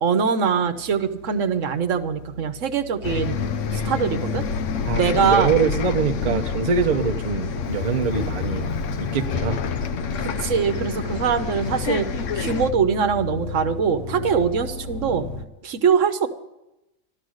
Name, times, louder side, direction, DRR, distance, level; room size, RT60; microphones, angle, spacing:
voice 1, 0.0-3.4 3.7-4.4 5.0-5.5 6.3-6.4 10.2-12.1 12.3-15.3 15.6-16.3, right 6 dB, 70° right, 8 dB, 1.2 m, -22 dB
sound 1, 0.6-15.4, left 2 dB, 40° left, 1.3 m, -35 dB
Bus, 3.0-12.7, left 5 dB, 70° left, 1.0 m, -28 dB
voice 2, 4.8-8.7 9.0-9.6, right 5 dB, 40° right, 5 dB, 0.7 m, -24 dB
13.0 x 13.0 x 6.4 m, 0.93 s
omnidirectional pair, 1.4 m